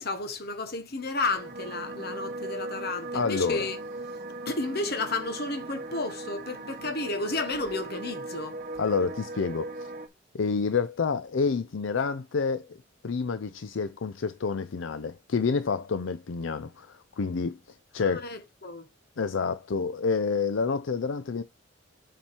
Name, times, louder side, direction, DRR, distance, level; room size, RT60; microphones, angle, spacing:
voice 1, 0.0-3.8 4.5-8.6 18.0-18.9, left 3 dB, 50° left, 1.3 m, -32 dB
sound 1, 1.3-10.1, right 2 dB, 45° right, 1.1 m, -38 dB
voice 2, 3.1-3.7 8.8-9.9 10.3-12.7 13.0-17.6 17.9-18.3 19.2-21.4, left 5 dB, 65° left, 0.5 m, -28 dB
7.3 x 4.9 x 4.4 m
head